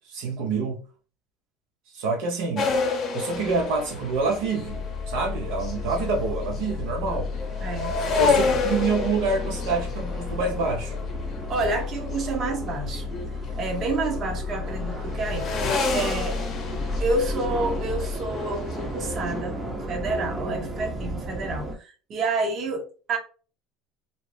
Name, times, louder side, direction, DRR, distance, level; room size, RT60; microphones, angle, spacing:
voice 1, 0.1-0.8 1.9-2.8 3.1-7.3 8.0-10.9, right 4 dB, 75° right, 0.7 m, -27 dB
sound 1, 2.6-12.3 12.7-14.3 14.6-19.4, left 4 dB, 40° left, 0.7 m, -30 dB
sound 2, 3.3-21.8, right 1 dB, 10° right, 0.7 m, -36 dB
sound 3, 4.6-18.2, left 5 dB, 75° left, 0.6 m, -34 dB
voice 2, 7.6-8.5 11.5-13.1 13.6-15.5 15.9-16.4 17.0-19.6 19.9-23.2, right 3 dB, 45° right, 0.8 m, -29 dB
2.6 x 2.0 x 3.1 m
supercardioid pair, 110°, 0 cm